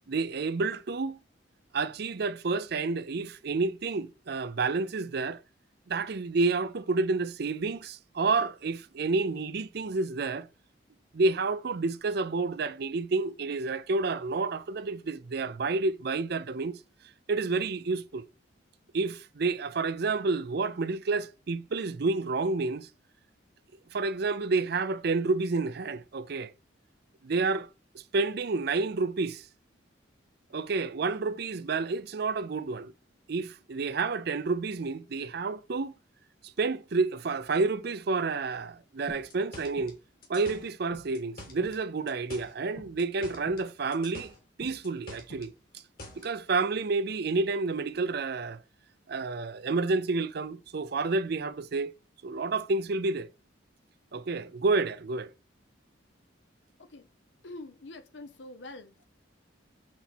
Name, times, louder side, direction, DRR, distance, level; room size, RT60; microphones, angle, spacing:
voice 1, 0.1-1.2 1.7-5.4 5.9-10.5 11.1-16.8 17.3-18.2 18.9-22.9 23.9-26.5 27.2-27.7 27.9-29.5 30.5-32.9 33.3-35.9 36.4-40.0 40.3-44.3 44.6-45.5 46.2-48.6 49.1-51.9 52.2-53.3 54.1-55.3, right 3 dB, 55° right, 0.5 m, -29 dB
sound 1, 39.1-41.8 42.1-43.7 43.9-46.3, left 1 dB, 50° left, 2.3 m, -46 dB
voice 2, 57.4-59.0, left 2 dB, 70° left, 0.8 m, -45 dB
6.0 x 4.1 x 6.1 m
head